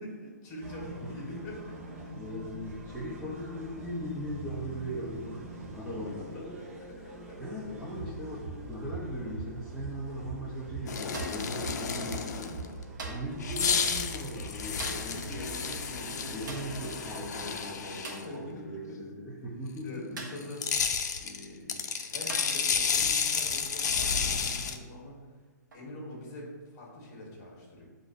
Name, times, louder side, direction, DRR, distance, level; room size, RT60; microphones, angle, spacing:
voice 1, 0.0-2.1 6.0-7.4 12.5-12.8 14.9-16.7 18.2-18.8 19.8-20.6 21.2-25.1 25.7-27.8, left 1 dB, 30° left, -3 dB, 1.4 m, -44 dB
sound 1, 0.6-17.5, right 2 dB, 45° right, 0.8 m, -43 dB
voice 2, 2.1-6.5 7.4-12.5 13.0-15.2 16.3-20.2, equal, ahead, -11 dB, 0.5 m, -39 dB
sound 2, 10.9-12.7 13.4-18.2 20.4-24.8, left 6 dB, 65° left, 0.5 m, -31 dB
sound 3, 11.1-11.5 13.0-13.4 14.8-15.2 16.5-16.8 18.0-18.4 20.2-20.5 21.6-21.7 22.3-22.7 23.8-24.1 25.7-25.9, right 2 dB, 90° right, 0.9 m, -42 dB
7.3 x 2.5 x 2.6 m, 1.5 s
hypercardioid pair, 160°, 10 cm